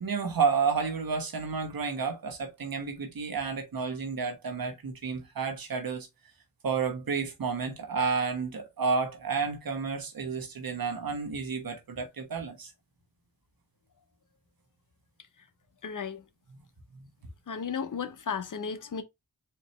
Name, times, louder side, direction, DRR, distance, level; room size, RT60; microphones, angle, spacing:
voice 1, 0.0-6.1 6.6-12.7 16.5-16.7 16.9-17.1, right 5 dB, 80° right, 1.2 m, -31 dB
voice 2, 15.8-16.2 17.5-19.0, left 6 dB, 60° left, 0.7 m, -34 dB
4.4 x 2.9 x 3.2 m
cardioid pair, 40°, 35 cm